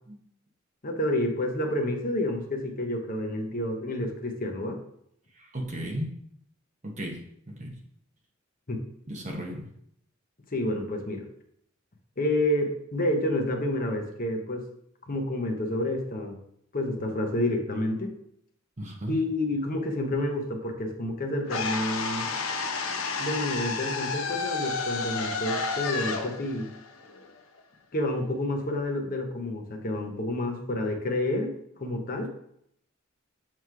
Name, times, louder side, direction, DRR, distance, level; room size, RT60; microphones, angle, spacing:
voice 1, 0.8-4.8 8.7-8.8 10.5-11.2 12.2-14.7 15.1-16.4 16.7-18.1 19.1-22.3 23.2-26.7 27.9-31.5 31.8-32.3, left 1 dB, 40° left, 3 dB, 1.0 m, -29 dB
voice 2, 5.4-6.1 6.8-7.2 7.5-7.8 9.1-9.7 18.8-19.1, equal, 35° right, 0 dB, 1.0 m, -34 dB
sound 1, 21.5-27.6, left 4 dB, 80° left, 0.7 m, -31 dB
7.5 x 3.2 x 4.7 m, 0.71 s
head